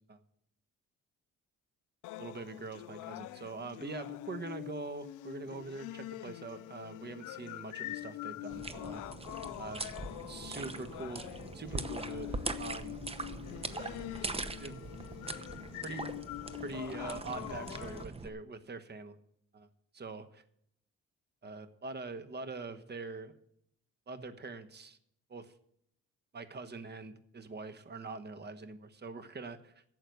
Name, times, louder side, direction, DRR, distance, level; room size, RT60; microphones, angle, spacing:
sound 1, 2.0-18.0, left 16 dB, 85° left, 0.5 m, -44 dB
voice 1, 2.2-9.0 9.6-9.9 10.3-11.3 11.5-13.0 14.6-14.9 15.8-16.1 16.6-19.2 19.5-19.7 19.9-20.4 21.4-23.3 24.1-25.0 25.3-25.5 26.3-29.8, right 3 dB, 35° right, 11 dB, 1.2 m, -43 dB
sound 2, 8.5-18.3, right 3 dB, 20° right, 0.8 m, -41 dB
11.5 x 7.9 x 8.0 m, 0.73 s
cardioid pair, 90°, 30 cm